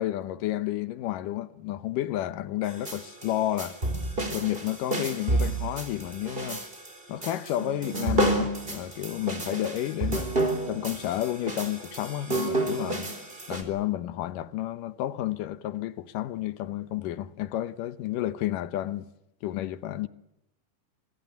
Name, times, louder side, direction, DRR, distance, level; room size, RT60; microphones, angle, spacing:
voice 1, 0.0-3.8 4.3-6.6 7.1-10.3 10.7-13.1 13.5-19.1 19.4-20.1, left 13 dB, 85° left, 2.6 m, -31 dB
sound 1, 2.7-13.6, right 2 dB, 15° right, 3.9 m, -30 dB
25.0 x 23.0 x 7.0 m
omnidirectional pair, 3.7 m